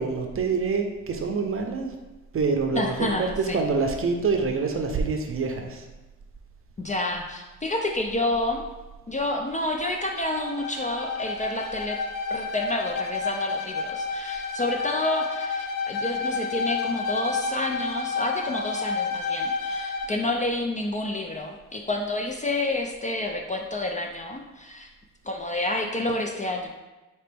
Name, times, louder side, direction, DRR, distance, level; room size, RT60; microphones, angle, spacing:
voice 1, 0.0-1.9 2.3-3.1 3.4-5.9, right 4 dB, 45° right, 3 dB, 0.6 m, -26 dB
voice 2, 2.7-3.6 6.8-8.6 9.1-12.0 12.3-24.9 25.2-26.7, left 2 dB, 25° left, 2 dB, 0.4 m, -29 dB
Bowed string instrument, 9.7-20.2, left 4 dB, 80° left, 0.5 m, -30 dB
4.2 x 2.9 x 3.4 m, 1.1 s
cardioid pair, 95°, 32 cm